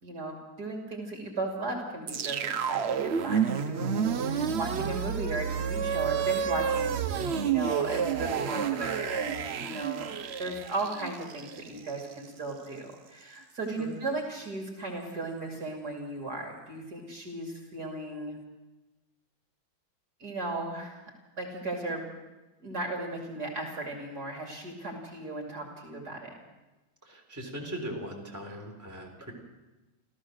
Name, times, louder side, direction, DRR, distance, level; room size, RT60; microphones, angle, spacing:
voice 1, 0.0-18.4 20.2-21.0 21.4-22.1 22.6-26.3, right 2 dB, 50° right, 1 dB, 3.2 m, -36 dB
sound 1, 2.1-12.3, right 7 dB, 85° right, 0.5 m, -30 dB
voice 2, 27.0-29.3, equal, 10° right, 0 dB, 3.7 m, -39 dB
28.0 x 14.5 x 6.4 m, 1.1 s
omnidirectional pair, 2.2 m